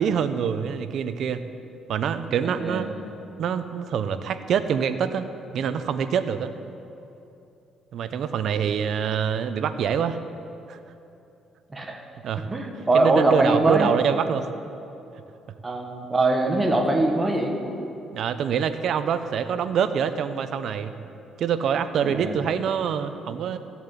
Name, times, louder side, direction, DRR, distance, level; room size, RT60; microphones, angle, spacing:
voice 1, 0.0-1.4 1.9-2.9 3.4-6.5 7.9-10.2 10.7-10.8 12.2-12.5 12.9-14.5 18.1-20.9 21.4-23.6, right 7 dB, 60° right, 10 dB, 0.7 m, -25 dB
voice 2, 2.3-2.9 11.7-12.0 12.5-13.9 15.6-17.5 22.0-22.4, right 2 dB, 20° right, 1 dB, 1.5 m, -22 dB
14.5 x 7.2 x 8.3 m, 2.8 s
cardioid pair, 125°, 0 cm